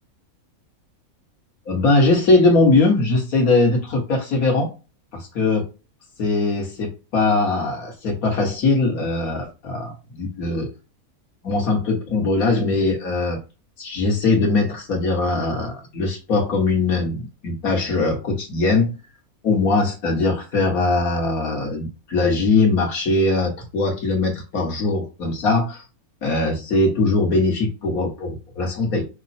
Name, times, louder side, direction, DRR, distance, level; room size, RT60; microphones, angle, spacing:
voice 1, 1.7-4.7 5.1-5.7 6.2-10.7 11.4-13.4 13.8-19.0 19.4-25.8 26.2-29.1, left 3 dB, 75° left, 1.9 m, -21 dB
6.0 x 2.0 x 4.2 m
omnidirectional pair, 1.5 m